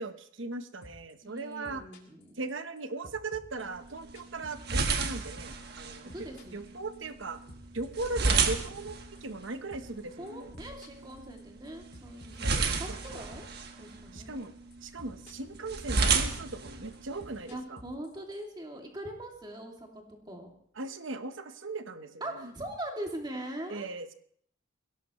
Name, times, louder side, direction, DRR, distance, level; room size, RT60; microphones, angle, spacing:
voice 1, 0.0-1.8 2.4-6.1 6.5-7.4 7.7-9.0 9.2-10.5 12.4-12.7 13.1-13.2 14.1-14.5 14.8-17.8 20.8-22.1 22.4-22.5 23.7-24.1, right 3 dB, 75° right, 9 dB, 1.1 m, -38 dB
sound 1, 0.8-1.1 1.4-2.8 3.0-5.0 5.3-5.6 5.8-10.0 10.3-11.7 11.9-13.9 14.2-14.5 14.7-15.6 15.8-18.4, left 1 dB, 55° left, 2.7 m, -52 dB
voice 2, 1.2-2.4 6.0-6.8 10.2-13.5 13.8-14.5 17.5-20.6 22.2-23.9, right 1 dB, 20° right, 1 dB, 2.5 m, -42 dB
sound 2, 3.6-17.6, right 4 dB, 55° right, 1.4 m, -33 dB
21.5 x 16.5 x 3.1 m, 0.63 s
head